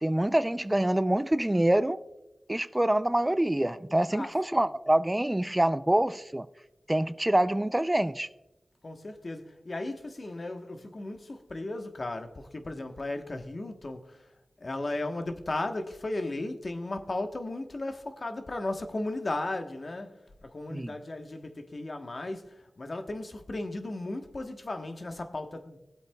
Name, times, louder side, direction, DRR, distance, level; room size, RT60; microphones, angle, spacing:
voice 1, 0.0-2.0 2.5-6.5 6.9-8.3 20.7-20.9, right 1 dB, 15° right, 0.4 m, -26 dB
voice 2, 8.8-14.2 14.6-25.8, left 2 dB, 50° left, 1.1 m, -35 dB
21.5 x 8.0 x 2.3 m
cardioid pair, 55°, 0 cm